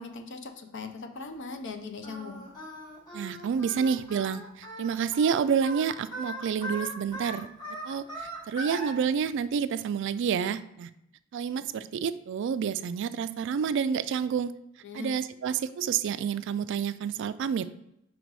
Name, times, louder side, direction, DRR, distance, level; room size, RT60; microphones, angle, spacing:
voice 1, 0.0-2.4 14.8-15.2, left 4 dB, 60° left, 6 dB, 0.6 m, -39 dB
Singing, 2.0-8.9, right 1 dB, 20° left, 1.4 m, -39 dB
voice 2, 3.1-7.5 7.8-10.9 11.3-14.5 14.9-17.7, right 7 dB, 60° right, 14 dB, 0.3 m, -29 dB
5.0 x 4.0 x 4.7 m, 0.79 s
head